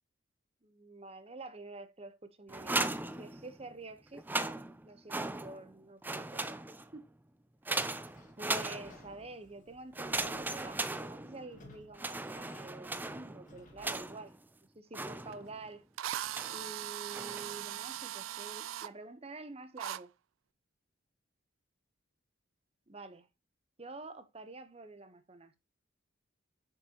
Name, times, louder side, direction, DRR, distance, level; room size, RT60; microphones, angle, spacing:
voice 1, 0.6-4.6 4.8-6.6 6.9-7.1 8.4-14.3 14.7-15.8 16.5-20.1 22.9-23.3 23.8-25.6, right 3 dB, 30° right, 0.8 m, -48 dB
sound 1, 2.5-3.7 4.1-5.7 6.0-7.0 7.7-9.2 9.9-11.6 11.9-14.4 14.9-15.7 16.3-16.7 17.1-17.6, right 2 dB, 10° right, 0.4 m, -37 dB
Sliding door / Squeak, 8.0-14.1, left 2 dB, 40° left, 1.7 m, -60 dB
Drill, 15.3-15.4 16.0-18.9 19.8-20.0, right 12 dB, 85° right, 0.3 m, -39 dB
7.3 x 6.8 x 2.9 m
head